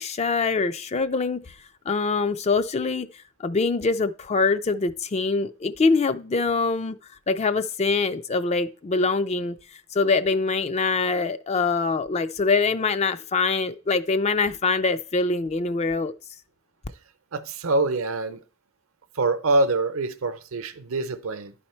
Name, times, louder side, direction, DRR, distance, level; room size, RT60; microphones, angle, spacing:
voice 1, 0.0-1.5 1.9-3.1 3.4-7.0 7.3-9.6 9.9-16.1, left 4 dB, 30° left, 0.4 m, -24 dB
voice 2, 17.3-18.4 19.2-21.5, right 2 dB, 70° right, 0.7 m, -25 dB
11.0 x 4.3 x 4.4 m
head